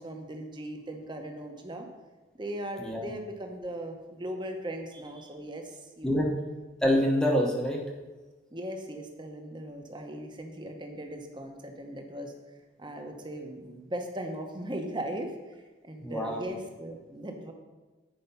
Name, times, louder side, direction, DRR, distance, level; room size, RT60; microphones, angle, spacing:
voice 1, 0.0-1.9 2.4-6.3 8.5-12.3 12.8-15.5 15.8-17.5, right 1 dB, 25° right, 3 dB, 0.9 m, -38 dB
voice 2, 2.8-3.1 6.0-6.3 6.8-7.8 16.0-16.5, equal, 5° left, 0 dB, 0.9 m, -26 dB
8.8 x 5.0 x 5.5 m, 1.2 s
head